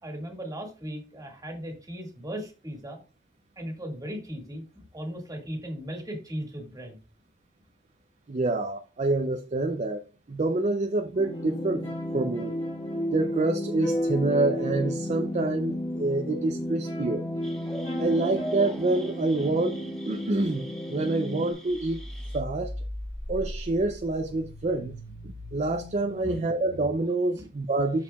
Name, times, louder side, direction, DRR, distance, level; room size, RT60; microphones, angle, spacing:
voice 1, 0.0-3.0 3.6-7.0 26.2-26.4 27.4-27.5 27.9-28.0, equal, 20° right, 1.9 m, -37 dB
voice 2, 8.3-11.8 12.1-12.5 13.1-17.3 18.0-20.6 20.9-22.0 22.3-22.7 23.3-24.9 25.5-28.0, right 2 dB, 35° right, 0.5 m, -27 dB
sound 1, 11.2-21.5, equal, 30° left, 1.6 m, -32 dB
sound 2, 17.4-22.4, right 1 dB, 5° left, 1.4 m, -42 dB
sound 3, 21.7-26.9, left 1 dB, 80° right, 3.0 m, -39 dB
12.5 x 4.7 x 2.3 m
head